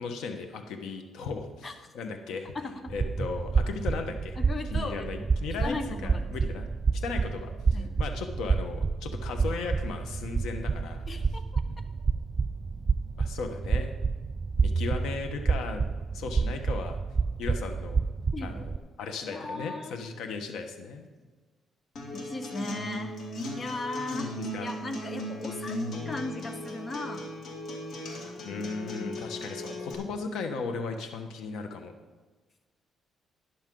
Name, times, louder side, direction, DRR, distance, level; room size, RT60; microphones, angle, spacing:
voice 1, 0.0-1.7 1.9-2.5 2.9-4.4 4.7-5.8 6.0-6.7 6.9-11.0 11.6-11.9 13.2-13.9 14.6-15.8 16.1-17.0 17.4-18.0 18.4-18.7 19.0-21.1 24.2-24.7 27.9-31.9, left 4 dB, 85° left, 5 dB, 1.3 m, -36 dB
voice 2, 2.5-2.9 4.4-5.3 5.6-6.4 7.7-8.0 11.1-11.6 18.3-18.6 19.3-20.0 22.1-23.2 23.6-25.8 26.0-27.3 28.9-29.2, left 2 dB, 30° left, 8 dB, 1.2 m, -37 dB
sound 1, 2.9-18.8, right 4 dB, 30° right, 0.3 m, -29 dB
Acoustic guitar, 22.0-29.9, left 1 dB, 65° left, 2.6 m, -37 dB
12.5 x 10.5 x 3.9 m, 1.3 s
cardioid pair, 105°, 0 cm